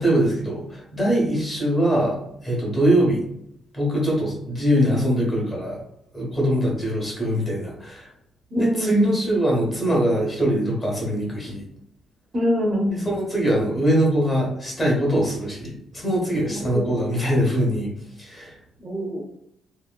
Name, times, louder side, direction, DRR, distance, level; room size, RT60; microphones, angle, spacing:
voice 1, 0.0-3.2 3.7-5.8 6.1-8.1 8.5-11.6 13.0-17.9 18.2-18.6, right 1 dB, 30° left, -2 dB, 1.1 m, -22 dB
voice 2, 8.5-9.1 12.3-13.1 16.5-16.8 18.8-19.2, left 1 dB, 40° right, 0 dB, 0.6 m, -24 dB
2.9 x 2.1 x 2.3 m, 0.76 s
cardioid pair, 90°, 0 cm